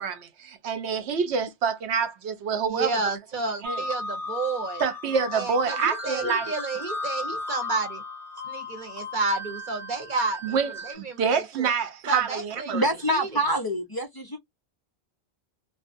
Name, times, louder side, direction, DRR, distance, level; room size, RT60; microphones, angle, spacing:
voice 1, 0.0-3.0 3.6-3.8 4.8-6.5 10.4-12.8, right 6 dB, 80° right, 1.0 m, -27 dB
voice 2, 2.7-4.8 5.3-8.0 8.4-11.7 12.1-12.8 13.1-13.3, right 3 dB, 50° right, 0.8 m, -31 dB
sound 1, 3.6-10.9, left 2 dB, ahead, 0.9 m, -35 dB
voice 3, 12.7-14.4, right 1 dB, 40° left, 0.3 m, -26 dB
2.5 x 2.0 x 2.4 m
omnidirectional pair, 1.1 m